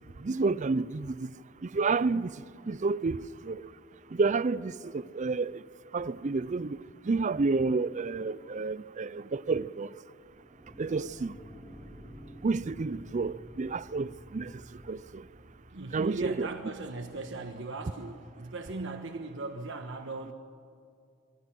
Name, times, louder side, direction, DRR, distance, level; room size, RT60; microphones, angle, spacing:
voice 1, 0.2-1.3 1.6-2.3 2.7-3.2 3.4-3.6 4.1-5.6 5.9-6.8 7.1-9.9 10.8-11.3 12.4-14.5 14.9-15.2 15.9-16.5, right 4 dB, 40° right, 0.5 m, -30 dB
sound 1, 10.2-17.5, equal, 10° left, 3.1 m, -51 dB
voice 2, 15.7-20.3, right 3 dB, 70° right, 1.3 m, -38 dB
26.5 x 23.0 x 6.1 m
head